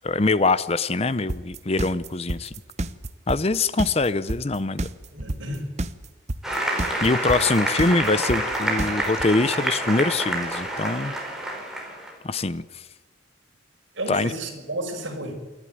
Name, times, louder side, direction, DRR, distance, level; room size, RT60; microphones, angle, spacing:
voice 1, 0.0-2.5 3.3-4.8 7.0-11.1 12.2-12.8 14.1-14.3, left 3 dB, 30° left, 16 dB, 0.6 m, -23 dB
sound 1, 1.3-9.3, right 1 dB, 35° right, 0.9 m, -29 dB
voice 2, 5.1-5.7 13.9-15.3, right 1 dB, 65° right, 2 dB, 5.9 m, -32 dB
Applause, 6.4-12.1, right 1 dB, ahead, 4.7 m, -28 dB
27.0 x 12.0 x 9.1 m, 1.3 s
head